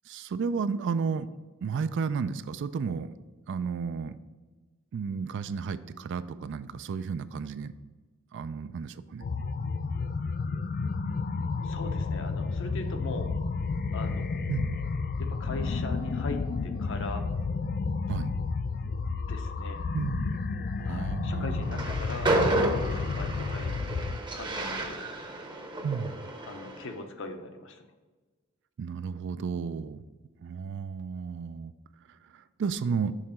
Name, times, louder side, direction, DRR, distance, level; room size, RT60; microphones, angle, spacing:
voice 1, 0.1-1.3 1.6-3.1 3.5-4.2 4.9-7.7 8.3-9.3 14.5-14.8 18.1-18.3 19.9-20.3 20.7-21.8 25.8-26.1 28.8-30.0 30.4-31.7 32.3-33.1, right 5 dB, 60° right, 14 dB, 0.3 m, -32 dB
sound 1, 9.2-24.2, left 4 dB, 45° left, 0.4 m, -31 dB
voice 2, 11.6-13.3 13.9-14.4 15.2-17.2 19.3-19.8 20.9-22.3 22.6-23.8 24.3-25.1 26.4-27.8, left 2 dB, 65° left, 6 dB, 0.8 m, -40 dB
Train, 21.6-26.9, right 2 dB, 20° right, 0.7 m, -31 dB
6.4 x 3.8 x 5.6 m, 1.3 s
head